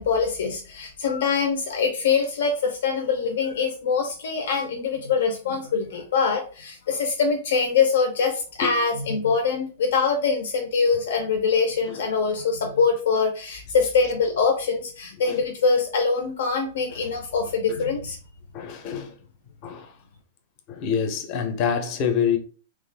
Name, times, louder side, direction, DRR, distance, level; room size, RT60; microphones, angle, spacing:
voice 1, 0.0-18.2, left 5 dB, 75° left, 0.6 m, -23 dB
voice 2, 18.5-19.1 19.6-19.9 20.7-22.4, left 7 dB, 35° left, 0.6 m, -26 dB
3.2 x 2.4 x 3.3 m
supercardioid pair, 160°, 0 cm